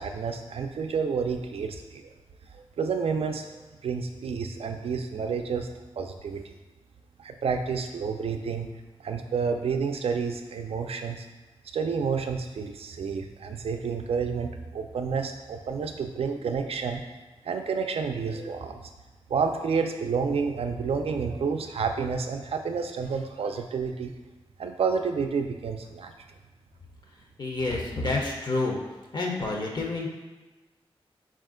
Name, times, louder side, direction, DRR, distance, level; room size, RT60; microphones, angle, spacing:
voice 1, 0.0-2.0 2.5-5.7 6.0-6.5 7.2-8.7 9.0-11.3 11.7-17.0 17.4-18.8 19.3-24.1 24.6-26.1, right 5 dB, 75° right, 6 dB, 0.4 m, -30 dB
voice 2, 27.4-28.8 29.1-30.1, left 2 dB, 45° left, -1 dB, 0.5 m, -28 dB
4.3 x 2.4 x 3.7 m, 1.2 s
wide cardioid pair, 135°, 10 cm